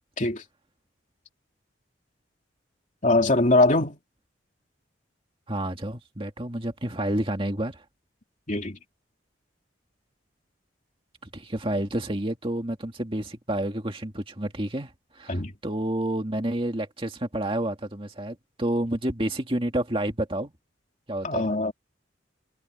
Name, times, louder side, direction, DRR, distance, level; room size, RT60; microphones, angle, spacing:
voice 1, 3.0-4.0 8.5-8.8 15.3-15.5 21.2-21.7, left 2 dB, 40° left, 2.8 m, -22 dB
voice 2, 5.5-7.8 11.2-20.5 21.1-21.5, right 1 dB, 30° right, 2.2 m, -29 dB
head